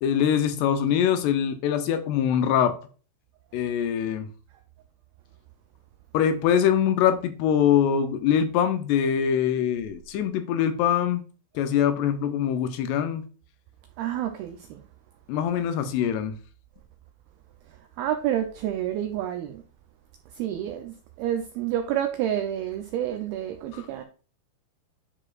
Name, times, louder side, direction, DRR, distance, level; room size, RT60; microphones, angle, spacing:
voice 1, 0.0-2.8 3.5-4.3 6.1-11.2 11.6-13.3 15.3-16.3 23.7-23.9, left 9 dB, 80° left, 2.6 m, -23 dB
voice 2, 14.0-14.8 18.0-19.6 20.3-24.0, right 11 dB, 85° right, 2.2 m, -29 dB
10.5 x 5.0 x 2.4 m
omnidirectional pair, 5.1 m